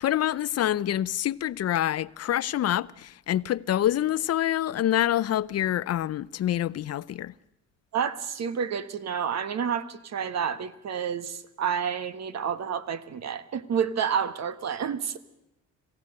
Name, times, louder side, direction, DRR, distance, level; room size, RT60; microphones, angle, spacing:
voice 1, 0.0-7.3, left 12 dB, 55° left, 0.6 m, -26 dB
voice 2, 7.9-15.2, right 7 dB, 60° right, 1.4 m, -29 dB
26.5 x 15.5 x 6.6 m
cardioid pair, 90°, 30 cm